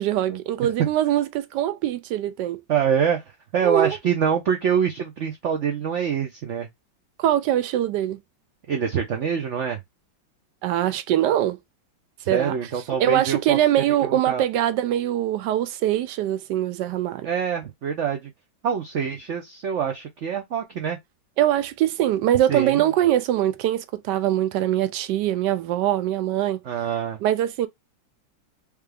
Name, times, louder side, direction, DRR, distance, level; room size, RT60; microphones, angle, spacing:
voice 1, 0.0-2.6 3.6-4.0 7.2-8.2 10.6-11.6 12.3-12.6 13.0-17.3 21.4-26.6 27.2-27.7, right 12 dB, 75° right, 1.1 m, -22 dB
voice 2, 2.7-3.2 3.5-6.7 8.7-9.8 12.3-13.6 14.0-14.4 17.2-18.3 18.6-21.0 22.5-22.8 26.6-27.2, right 7 dB, 90° right, 0.6 m, -25 dB
3.3 x 3.3 x 3.3 m
omnidirectional pair, 2.0 m